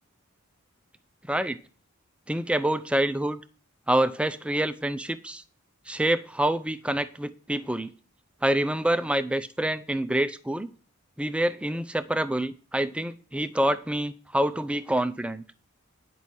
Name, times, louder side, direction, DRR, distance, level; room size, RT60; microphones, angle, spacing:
voice 1, 2.3-3.4 3.9-5.4 5.9-7.9 8.4-10.7 11.2-15.4, right 1 dB, 5° right, 0.5 m, -26 dB
9.9 x 5.4 x 6.1 m
head